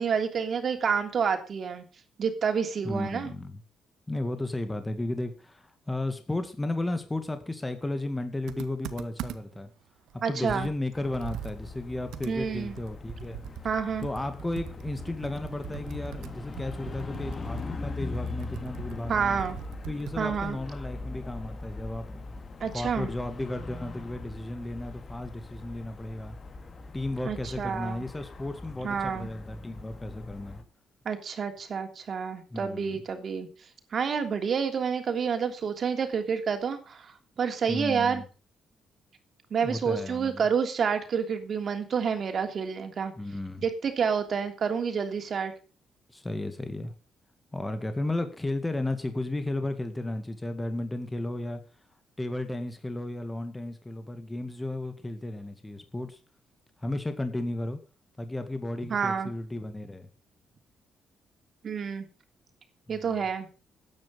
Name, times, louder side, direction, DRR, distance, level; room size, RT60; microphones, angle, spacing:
voice 1, 0.0-1.8 2.2-3.3 10.2-10.7 12.2-12.7 13.6-14.1 19.1-19.6 20.2-20.6 22.6-23.1 27.2-28.0 28.8-29.3 31.0-33.5 33.9-38.2 39.5-43.1 43.6-45.5 58.9-59.3 61.6-62.0 62.9-63.5, right 6 dB, 50° right, 3.1 m, -29 dB
voice 2, 2.8-3.6 4.1-9.7 10.1-13.4 14.0-19.4 19.9-22.2 22.7-26.4 26.9-30.6 32.5-33.0 37.7-38.2 39.6-40.4 43.2-43.6 46.1-46.9 47.5-51.6 52.2-56.2 56.8-57.8 58.2-60.1 62.9-63.3, left 2 dB, 15° left, 2.1 m, -34 dB
Computer keyboard, 8.5-9.6 10.1-10.2 10.5-20.3, right 12 dB, 85° right, 1.2 m, -42 dB
sound 1, 10.9-30.6, left 3 dB, 35° left, 2.4 m, -41 dB
14.0 x 9.8 x 5.5 m
cardioid pair, 90°, 0 cm